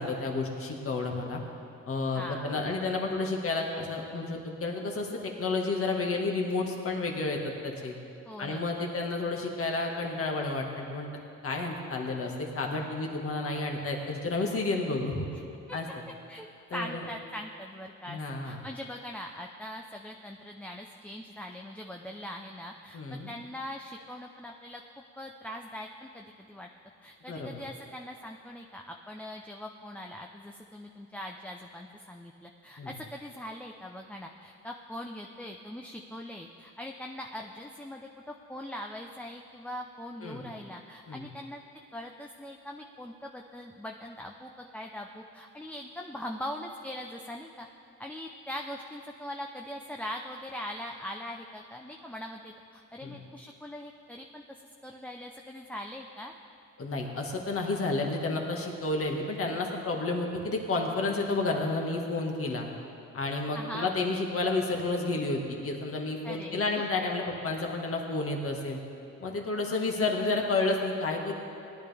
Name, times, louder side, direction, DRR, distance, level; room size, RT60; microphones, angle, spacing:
voice 1, 0.0-1.4 1.9-8.0 8.4-11.1 11.4-15.3 15.7-15.9 16.7-17.0 18.1-18.6 22.9-23.3 27.3-27.5 32.8-32.9 40.2-40.4 41.1-41.3 53.0-53.2 56.8-62.7 63.1-68.8 69.2-71.3, left 3 dB, 45° left, 1 dB, 1.8 m, -31 dB
voice 2, 2.1-2.9 8.3-8.9 15.3-15.4 15.7-15.8 16.3-16.5 16.7-24.8 25.2-26.7 27.0-41.6 41.9-47.7 48.0-54.4 54.8-56.3 63.5-64.0 66.2-66.8, left 1 dB, 5° left, 1 dB, 0.6 m, -41 dB
18.0 x 10.5 x 3.5 m, 2.6 s
cardioid pair, 90°, 30 cm